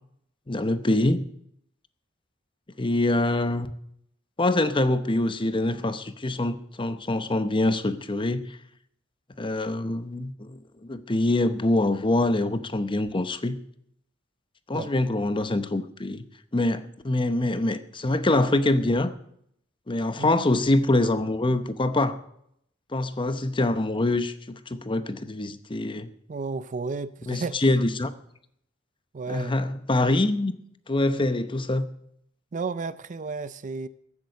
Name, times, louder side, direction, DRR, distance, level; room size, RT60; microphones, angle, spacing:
voice 1, 0.5-1.2 2.8-3.7 4.4-8.6 9.4-13.6 14.7-16.3 16.5-19.1 19.9-22.2 22.9-26.1 27.3-28.1 29.3-30.5 30.9-31.9, left 2 dB, 25° left, 0.8 m, -25 dB
voice 2, 26.3-27.6 29.1-29.6 32.5-33.9, right 4 dB, 40° right, 0.4 m, -33 dB
14.5 x 8.6 x 6.7 m
head